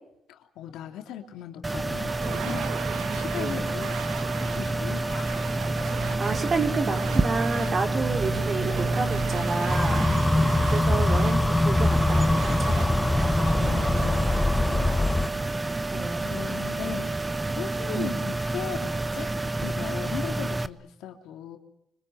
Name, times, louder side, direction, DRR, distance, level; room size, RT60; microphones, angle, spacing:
voice 1, 0.3-4.0 4.4-5.3 6.1-6.2 7.5-7.9 9.8-10.4 13.6-14.4 14.7-15.3 16.1-17.2 17.6-21.6, left 10 dB, 90° left, 4 dB, 3.0 m, -39 dB
sound 1, 1.6-20.7, right 2 dB, 15° right, 1.1 m, -28 dB
sound 2, 2.1-15.9, right 9 dB, 90° right, 2.2 m, -37 dB
voice 2, 6.0-10.1 10.4-13.4 15.9-16.3 17.9-18.2, right 4 dB, 40° right, 4 dB, 4.7 m, -30 dB
sound 3, 9.7-15.3, left 2 dB, 10° left, 1.0 m, -23 dB
26.0 x 25.0 x 8.0 m, 0.83 s
cardioid pair, 90°, 0 cm